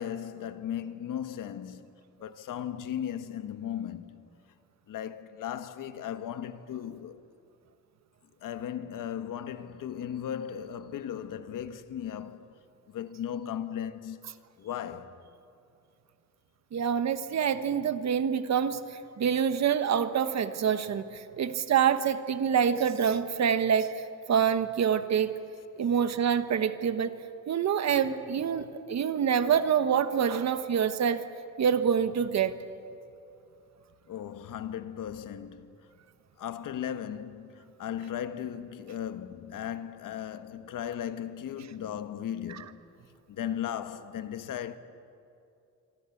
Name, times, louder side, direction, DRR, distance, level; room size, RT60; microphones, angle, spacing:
voice 1, 0.0-4.3 4.9-7.2 8.4-12.5 12.9-15.2 34.1-35.9 36.4-42.8 43.3-44.8, left 9 dB, 90° left, 1.3 m, -37 dB
voice 2, 16.7-18.8 19.2-24.0 24.3-25.4 25.8-27.2 27.5-31.2 31.6-32.6, right 8 dB, 60° right, 1.3 m, -26 dB
26.5 x 23.5 x 8.5 m
wide cardioid pair, 150°, 31 cm